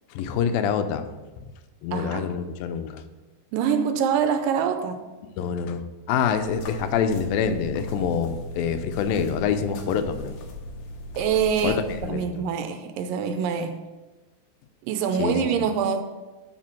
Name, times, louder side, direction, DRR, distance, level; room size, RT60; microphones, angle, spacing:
voice 1, 0.1-1.1 1.4-1.5 1.8-3.0 5.4-10.3 11.6-12.4 15.2-15.7, left 7 dB, 90° left, 2.4 m, -26 dB
voice 2, 1.9-2.3 3.5-5.0 11.2-13.8 14.8-16.0, right 7 dB, 80° right, 2.3 m, -25 dB
sound 1, 6.3-12.1, left 1 dB, 70° left, 2.5 m, -37 dB
12.0 x 4.5 x 4.3 m
omnidirectional pair, 4.1 m